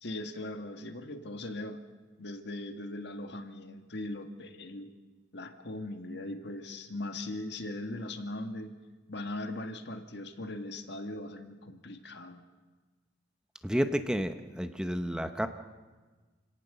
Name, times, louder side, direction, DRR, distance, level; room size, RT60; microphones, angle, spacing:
voice 1, 0.0-1.8 2.2-4.9 5.3-8.8 9.1-12.4, left 1 dB, 60° left, 7 dB, 1.8 m, -39 dB
voice 2, 13.6-15.5, equal, 5° right, 8 dB, 0.9 m, -31 dB
28.5 x 18.0 x 6.9 m, 1.3 s
head